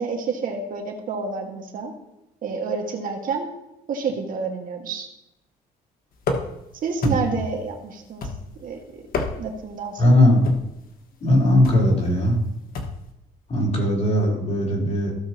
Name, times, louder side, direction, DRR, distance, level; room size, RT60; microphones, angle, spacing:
voice 1, 0.0-1.9 2.4-3.5 3.9-5.1 6.8-8.3 8.6-9.0 9.4-10.1, right 5 dB, 55° right, 1 dB, 1.8 m, -29 dB
sound 1, 6.2-6.7 7.0-7.5 8.2-8.7 9.0-9.6 10.4-10.8 11.6-11.9 12.7-13.1, left 3 dB, 60° left, 1.5 m, -29 dB
voice 2, 10.0-10.4 11.2-12.4 13.5-15.1, left 1 dB, 40° left, -3 dB, 3.9 m, -18 dB
15.5 x 6.6 x 2.9 m, 0.89 s
cardioid pair, 110°, 17 cm